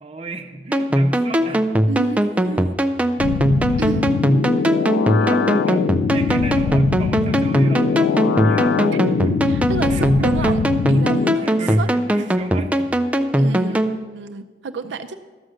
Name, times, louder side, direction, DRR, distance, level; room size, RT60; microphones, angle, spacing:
voice 1, 0.0-1.8 2.5-2.7 3.7-4.0 5.1-5.9 6.1-9.3 9.9-10.5 11.4-12.9 13.5-13.8 14.9-15.0, right 3 dB, 35° right, 4 dB, 0.7 m, -35 dB
sound 1, 0.7-14.0, equal, 10° right, 0.4 m, -20 dB
voice 2, 1.9-2.8 3.8-4.1 8.9-10.6 10.9-11.9 13.4-15.1, right 3 dB, 80° right, 9 dB, 0.5 m, -30 dB
sound 2, 3.2-11.4, left 6 dB, 80° left, 0.3 m, -22 dB
13.0 x 6.4 x 6.3 m, 1.4 s
head